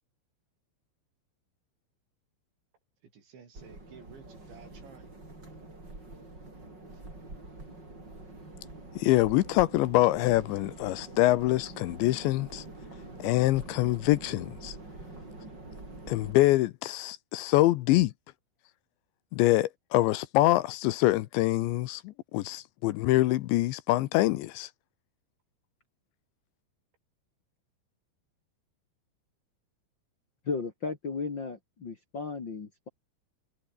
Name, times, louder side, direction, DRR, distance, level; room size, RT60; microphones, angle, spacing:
voice 1, 3.0-5.2 5.5-5.6, right 6 dB, 75° right, 7.3 m, -53 dB
sound 1, 3.5-16.3, right 2 dB, 20° right, 7.4 m, -45 dB
voice 2, 9.0-12.6 13.2-14.8 16.1-18.1 19.3-24.7, left 17 dB, 80° left, 3.1 m, -25 dB
voice 3, 30.4-32.9, left 4 dB, 40° left, 1.6 m, -35 dB
omnidirectional pair, 5.3 m